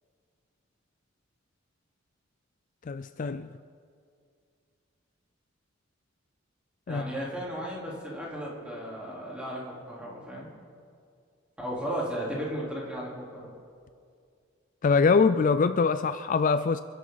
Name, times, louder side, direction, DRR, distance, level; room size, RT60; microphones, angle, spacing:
voice 1, 2.9-3.5 6.9-7.1 14.8-16.8, left 4 dB, 40° left, 12 dB, 0.4 m, -23 dB
voice 2, 6.9-10.5 11.6-13.5, equal, 5° right, -5 dB, 3.7 m, -35 dB
28.0 x 11.0 x 4.0 m, 2.3 s
head